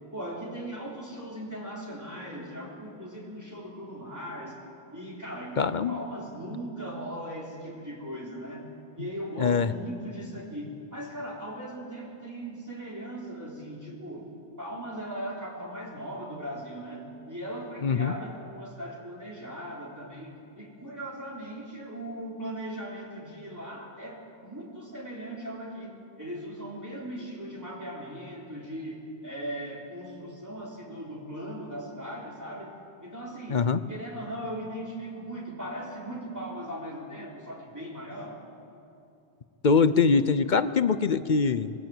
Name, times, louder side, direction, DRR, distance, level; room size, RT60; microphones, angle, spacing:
voice 1, 0.1-4.6 4.9-8.7 9.0-14.3 14.6-32.8 33.0-38.4, right 1 dB, 15° right, -4 dB, 3.7 m, -38 dB
voice 2, 5.6-6.0 9.4-9.7 17.8-18.1 33.5-33.8 39.6-41.7, left 5 dB, 50° left, 13 dB, 0.8 m, -23 dB
25.5 x 20.5 x 7.8 m, 2.8 s
omnidirectional pair, 1.1 m